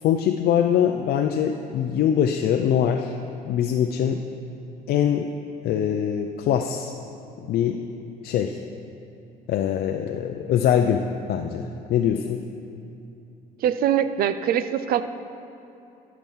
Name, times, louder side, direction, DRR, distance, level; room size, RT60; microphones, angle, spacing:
voice 1, 0.0-3.2 3.4-4.2 4.9-5.3 5.6-6.9 7.4-7.8 8.2-8.6 9.5-12.4, left 9 dB, 65° left, 4 dB, 0.5 m, -23 dB
voice 2, 13.6-15.0, right 10 dB, 60° right, 12 dB, 0.5 m, -23 dB
12.5 x 6.0 x 5.6 m, 2.8 s
cardioid pair, 110°, 17 cm